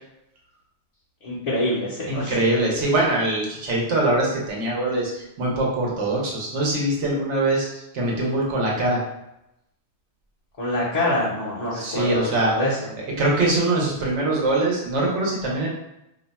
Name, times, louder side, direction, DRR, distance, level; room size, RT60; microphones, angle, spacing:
voice 1, 1.2-2.3 10.6-12.8, left 1 dB, 40° left, -8 dB, 0.6 m, -25 dB
voice 2, 2.1-9.0 11.7-12.7 13.0-15.7, right 2 dB, 90° right, -3 dB, 1.2 m, -23 dB
2.7 x 2.2 x 4.0 m, 0.86 s
omnidirectional pair, 1.2 m